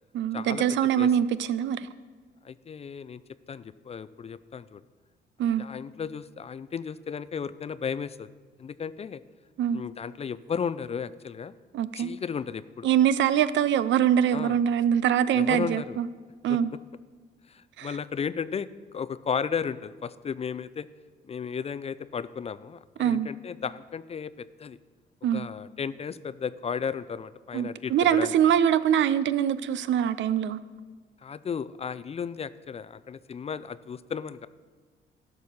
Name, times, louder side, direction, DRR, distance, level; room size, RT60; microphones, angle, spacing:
voice 1, 0.1-1.9 5.4-5.7 9.6-9.8 11.7-12.1 12.8-16.1 16.4-16.7 17.8-17.9 23.0-23.3 25.2-25.5 27.5-30.6, right 9 dB, 70° right, 15 dB, 0.5 m, -24 dB
voice 2, 2.4-3.2 3.5-4.8 5.6-8.3 8.6-9.2 9.7-11.5 11.9-12.9 14.3-14.6 15.3-16.0 16.5-16.6 17.5-20.9 21.3-24.8 25.3-28.3 31.2-34.5, left 6 dB, 30° left, 16 dB, 0.4 m, -34 dB
12.5 x 5.5 x 6.4 m, 1.4 s
cardioid pair, 90°, 20 cm